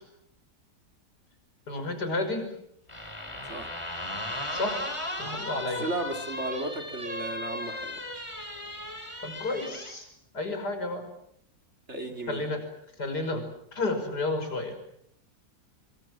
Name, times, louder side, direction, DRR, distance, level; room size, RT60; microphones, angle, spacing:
voice 1, 1.7-2.5 4.5-4.9 5.2-5.9 9.2-10.1 10.3-11.1 12.3-12.6 13.0-13.4 13.7-14.8, left 2 dB, 60° left, 7 dB, 6.2 m, -31 dB
sound 1, 2.9-10.0, left 1 dB, 15° left, 3.5 m, -36 dB
voice 2, 5.8-8.0 11.9-12.5, right 2 dB, 40° right, 5 dB, 3.0 m, -34 dB
25.5 x 24.5 x 7.5 m, 0.72 s
omnidirectional pair, 1.9 m